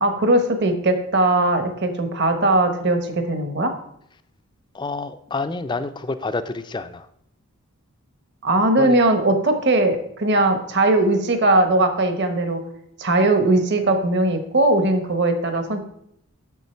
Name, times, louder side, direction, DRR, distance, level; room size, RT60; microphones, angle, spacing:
voice 1, 0.0-3.7 8.4-12.6 13.0-15.8, right 2 dB, 50° right, 8 dB, 1.1 m, -19 dB
voice 2, 4.7-7.1 8.8-9.0, left 3 dB, 20° left, 11 dB, 0.4 m, -28 dB
8.2 x 6.7 x 4.4 m, 0.72 s
head